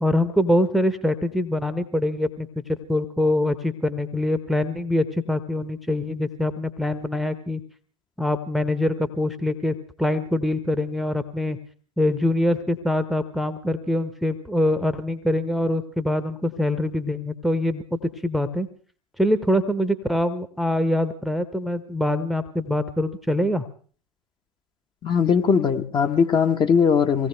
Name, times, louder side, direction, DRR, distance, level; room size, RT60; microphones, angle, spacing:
voice 1, 0.0-7.6 8.2-11.6 12.0-18.7 19.2-23.7, left 1 dB, ahead, 11 dB, 1.0 m, -24 dB
voice 2, 25.0-27.3, left 6 dB, 25° left, 6 dB, 1.1 m, -20 dB
23.5 x 17.5 x 3.4 m, 0.43 s
figure-of-eight pair, 90°, 18 cm